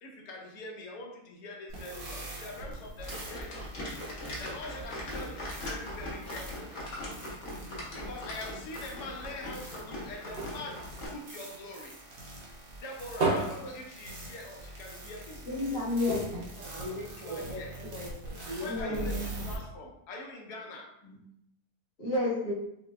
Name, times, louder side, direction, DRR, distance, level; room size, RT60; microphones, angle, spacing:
voice 1, 0.0-3.6 4.4-6.7 7.9-12.0 12.8-15.4 17.1-17.7 18.6-19.2 19.4-21.0, left 2 dB, 75° left, 0 dB, 1.3 m, -43 dB
sound 1, 1.7-19.6, right 1 dB, 85° right, 1.6 m, -44 dB
sound 2, 3.0-11.1, left 1 dB, 55° left, 1.1 m, -40 dB
sound 3, 10.4-12.1 12.5-14.7 15.1-15.2 15.4-15.6 16.0-17.6 18.2-18.3, right 3 dB, 50° right, 0.8 m, -35 dB
voice 2, 15.4-16.4 18.6-19.3 21.0-21.2 22.0-22.5, left 2 dB, 30° left, -9 dB, 1.4 m, -31 dB
voice 3, 16.6-19.2, left 1 dB, 65° right, -6 dB, 0.4 m, -40 dB
5.7 x 2.2 x 2.4 m, 0.77 s
omnidirectional pair, 1.7 m